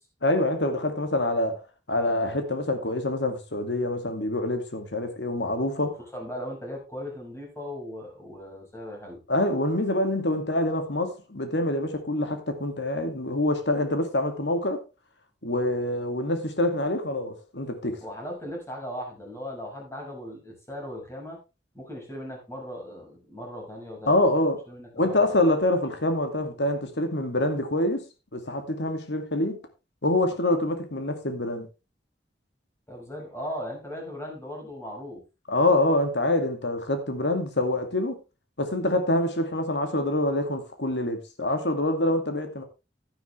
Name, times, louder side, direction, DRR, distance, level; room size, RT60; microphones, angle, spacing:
voice 1, 0.2-5.9 9.3-14.8 15.4-18.0 24.1-24.6 24.9-28.0 28.3-29.6 30.0-31.7 35.5-38.2 38.6-42.6, left 1 dB, 75° left, 2.3 m, -26 dB
voice 2, 6.1-9.2 18.0-21.4 21.7-24.2 24.7-25.3 32.9-35.2, equal, 15° left, 5.8 m, -38 dB
11.5 x 10.5 x 3.4 m
head